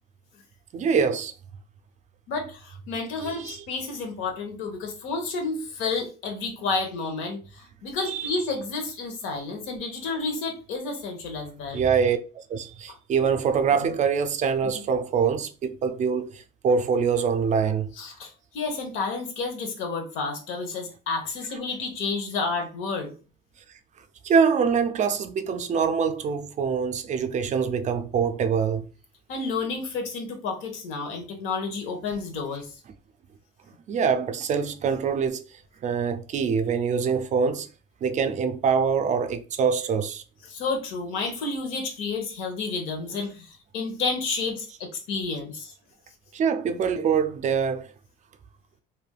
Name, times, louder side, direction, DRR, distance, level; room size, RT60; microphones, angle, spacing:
voice 1, 0.7-1.3 3.2-3.7 8.0-8.6 10.1-10.2 11.7-12.2 12.5-17.9 24.2-28.9 33.9-35.4 35.8-37.7 38.0-40.2 46.3-47.9, right 6 dB, 40° right, 0.4 m, -24 dB
voice 2, 2.3-7.4 7.8-11.8 12.9-13.0 14.7-14.8 18.0-23.1 29.3-32.7 40.5-45.7, left 4 dB, 90° left, 0.9 m, -30 dB
3.3 x 2.6 x 2.3 m
cardioid pair, 125°, 20 cm